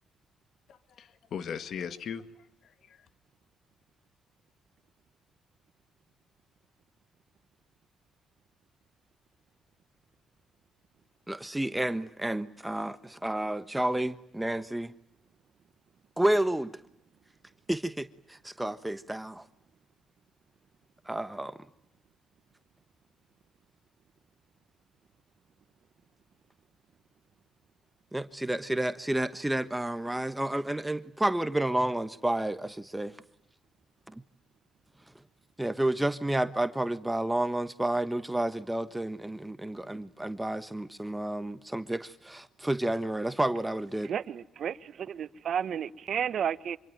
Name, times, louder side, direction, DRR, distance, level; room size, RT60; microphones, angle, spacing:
voice 1, 0.7-3.1, left 7 dB, 65° left, 1.9 m, -39 dB
voice 2, 11.3-14.9 16.2-16.7 17.7-19.4 21.1-21.6 28.1-33.2 34.1-34.2 35.6-44.1, right 1 dB, 10° right, 1.2 m, -30 dB
voice 3, 44.1-46.8, right 8 dB, 60° right, 1.3 m, -32 dB
26.0 x 24.5 x 9.0 m
cardioid pair, 90°, 0 cm